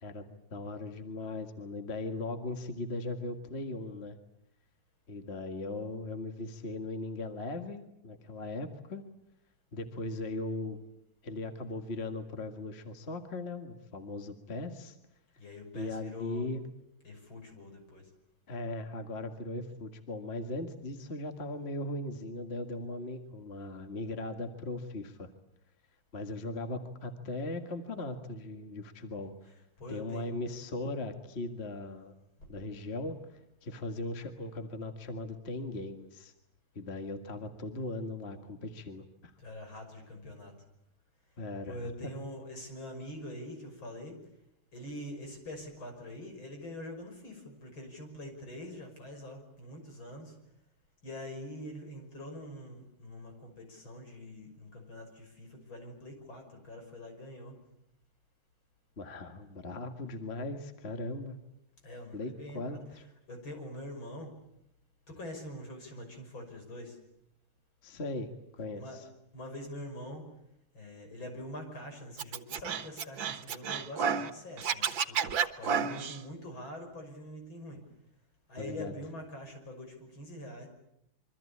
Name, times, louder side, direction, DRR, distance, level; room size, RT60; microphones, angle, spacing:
voice 1, 0.0-4.2 5.1-9.0 9.7-10.8 11.2-15.0 15.7-16.7 18.5-25.3 26.1-29.3 29.9-32.1 32.5-36.3 36.8-39.3 41.4-41.8 42.0-42.1 59.0-61.4 62.1-63.0 67.8-68.3 68.6-68.8 78.6-78.9, left 2 dB, 30° left, 6 dB, 2.0 m, -38 dB
voice 2, 15.4-16.5 17.0-18.1 29.8-30.3 39.4-40.5 41.7-44.1 44.7-50.3 51.0-57.6 61.8-64.3 65.1-67.0 68.7-69.0 69.3-70.2 70.7-77.8 78.5-80.7, left 1 dB, 75° left, 4 dB, 6.7 m, -44 dB
Scratching (performance technique), 72.2-74.3 74.6-76.2, right 7 dB, 70° right, 2.0 m, -31 dB
26.0 x 24.5 x 8.6 m, 0.81 s
omnidirectional pair, 2.2 m